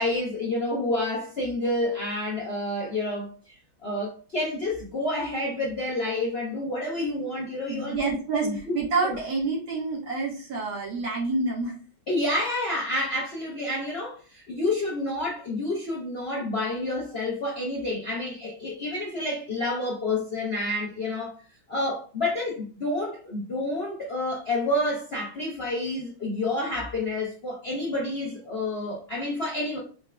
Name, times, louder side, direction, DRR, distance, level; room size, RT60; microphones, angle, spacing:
voice 1, 0.0-8.2 8.4-8.7 9.0-9.2 12.1-21.3 21.7-29.8, left 1 dB, 85° left, 0.5 m, -29 dB
voice 2, 7.7-11.7, right 3 dB, 65° right, 2.0 m, -28 dB
4.7 x 2.3 x 3.3 m
omnidirectional pair, 2.3 m